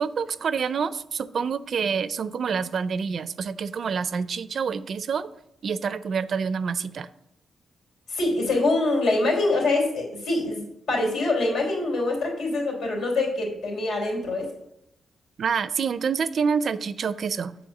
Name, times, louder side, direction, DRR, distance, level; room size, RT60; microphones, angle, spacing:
voice 1, 0.0-5.3 5.6-7.1 15.4-17.5, right 6 dB, 55° right, 15 dB, 0.4 m, -27 dB
voice 2, 8.1-14.5, left 2 dB, 90° left, -1 dB, 3.5 m, -24 dB
7.8 x 4.4 x 6.6 m, 0.78 s
wide cardioid pair, 130°, 0 cm